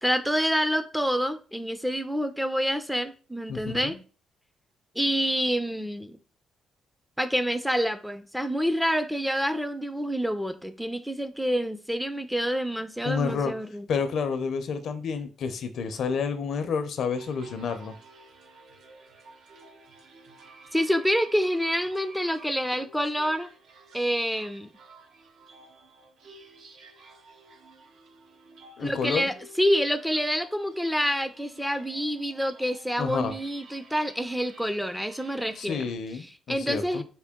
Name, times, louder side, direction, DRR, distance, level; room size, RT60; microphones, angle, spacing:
voice 1, 0.0-3.9 5.0-6.2 7.2-13.9 20.7-23.5 23.9-24.7 28.8-35.8 36.5-37.0, equal, ahead, 0.3 m, -27 dB
voice 2, 3.5-4.0 13.0-13.5 13.9-17.9 28.8-29.3 33.0-33.3 35.6-37.0, left 5 dB, 65° left, 0.5 m, -30 dB
sound 1, 17.1-36.0, right 3 dB, 70° right, 0.6 m, -52 dB
3.7 x 2.2 x 3.5 m
cardioid pair, 90°, 0 cm